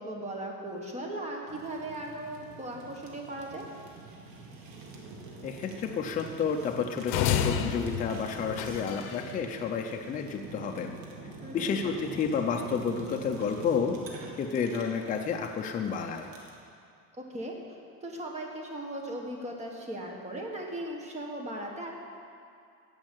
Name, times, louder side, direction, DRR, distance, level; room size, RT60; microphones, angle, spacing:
voice 1, 0.0-3.7 11.4-11.7 17.1-17.6 18.0-22.0, right 1 dB, 20° right, 0 dB, 1.5 m, -38 dB
Fire, 1.5-16.6, right 3 dB, 65° right, 2.0 m, -45 dB
voice 2, 5.4-11.0 11.5-14.0 14.4-16.3, left 6 dB, 20° left, 3 dB, 0.5 m, -31 dB
sound 1, 7.1-9.3, left 8 dB, 75° left, 0.9 m, -30 dB
15.0 x 5.3 x 8.9 m, 2.3 s
cardioid pair, 170°, 38 cm